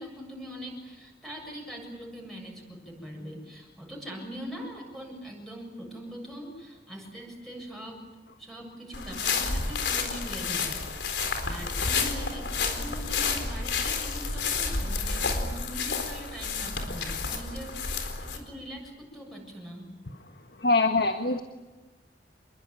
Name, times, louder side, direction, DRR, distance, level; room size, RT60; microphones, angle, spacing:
voice 1, 0.0-8.0 8.4-19.9, equal, ahead, -1 dB, 7.2 m, -42 dB
sound 1, 8.9-18.4, left 4 dB, 85° left, 4.2 m, -30 dB
voice 2, 20.6-21.4, left 3 dB, 65° left, 6 dB, 1.5 m, -23 dB
28.0 x 22.0 x 9.3 m, 1.2 s
head